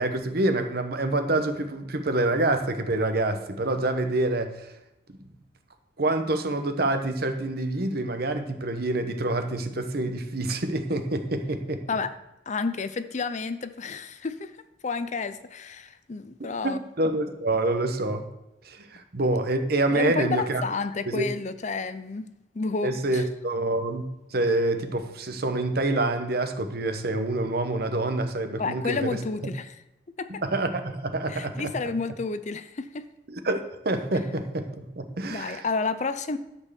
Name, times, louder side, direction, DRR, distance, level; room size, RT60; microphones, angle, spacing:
voice 1, 0.0-4.7 6.0-11.8 16.6-18.3 18.6-20.6 21.1-21.3 22.8-29.2 29.4-29.5 30.4-31.7 33.3-35.7, right 2 dB, 55° right, 7 dB, 1.0 m, -27 dB
voice 2, 12.5-14.5 14.8-16.8 19.9-22.3 22.5-23.2 28.6-29.7 30.2-30.4 31.3-33.1 35.2-36.4, left 4 dB, 40° left, 12 dB, 0.5 m, -30 dB
12.0 x 4.6 x 6.8 m, 0.91 s
head